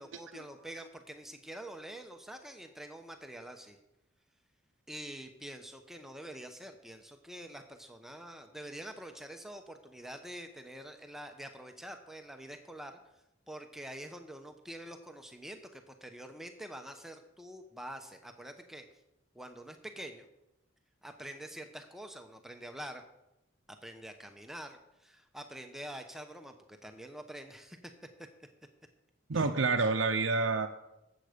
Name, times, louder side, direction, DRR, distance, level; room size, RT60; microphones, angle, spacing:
voice 1, 0.0-3.8 4.9-13.0 13.5-18.9 19.3-20.3 21.0-23.0 23.8-27.8 29.3-29.5, right 1 dB, ahead, 5 dB, 0.8 m, -46 dB
voice 2, 29.3-30.7, right 4 dB, 70° right, 3 dB, 0.7 m, -28 dB
13.0 x 8.0 x 5.1 m, 0.90 s
head